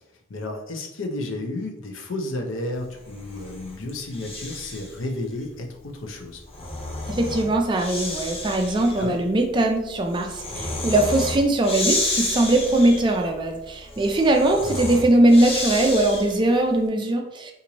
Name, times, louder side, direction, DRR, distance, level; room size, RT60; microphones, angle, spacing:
voice 1, 0.3-6.4 9.0-9.2, left 2 dB, 80° left, 2 dB, 0.6 m, -32 dB
Breathing, 3.0-5.0 6.2-16.5, left 2 dB, 30° left, 0.7 m, -31 dB
voice 2, 7.1-17.5, right 1 dB, 25° right, 3 dB, 0.3 m, -20 dB
3.0 x 2.5 x 3.9 m, 0.89 s
head